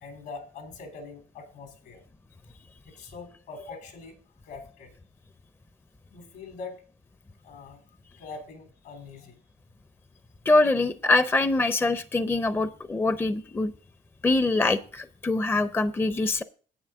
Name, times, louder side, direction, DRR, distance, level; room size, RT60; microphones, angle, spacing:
voice 1, 0.0-2.0 2.9-4.2 4.4-4.9 6.1-6.8 7.4-7.8 8.2-9.4, left 4 dB, 75° left, 5 dB, 3.3 m, -43 dB
voice 2, 10.5-13.7 14.2-16.4, left 2 dB, 15° left, 13 dB, 0.5 m, -24 dB
11.0 x 8.8 x 3.7 m, 0.41 s
cardioid pair, 110°, 17 cm